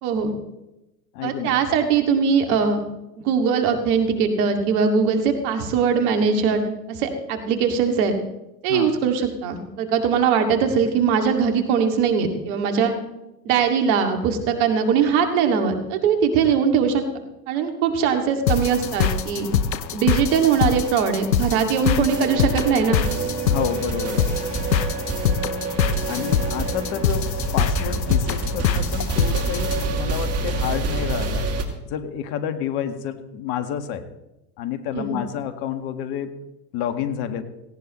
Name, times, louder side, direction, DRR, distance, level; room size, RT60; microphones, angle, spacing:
voice 1, 0.0-0.3 1.2-2.8 3.2-8.1 8.6-12.9 13.4-17.0 17.5-19.5 19.9-23.0 34.9-35.2, right 6 dB, 60° right, 5 dB, 2.5 m, -21 dB
voice 2, 1.1-1.5 8.7-8.9 23.5-24.3 26.1-31.5 31.8-34.0 34.6-36.3 36.7-37.4, left 9 dB, 50° left, 9 dB, 1.9 m, -29 dB
sound 1, 18.5-29.8, left 7 dB, 85° left, 1.0 m, -24 dB
sound 2, 22.1-31.6, right 3 dB, 30° right, 2.6 m, -27 dB
17.5 x 17.5 x 3.2 m, 0.95 s
hypercardioid pair, 90°, 50 cm